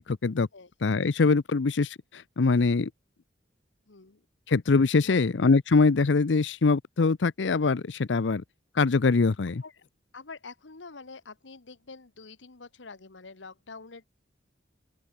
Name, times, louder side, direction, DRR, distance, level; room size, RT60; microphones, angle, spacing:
voice 1, 0.1-0.5 0.8-2.9 4.5-8.4 8.8-9.6, left 4 dB, 70° left, 0.6 m, -23 dB
voice 2, 3.9-4.2 5.0-5.3 9.6-9.8 10.1-14.1, left 4 dB, 90° left, 1.4 m, -46 dB
open air
head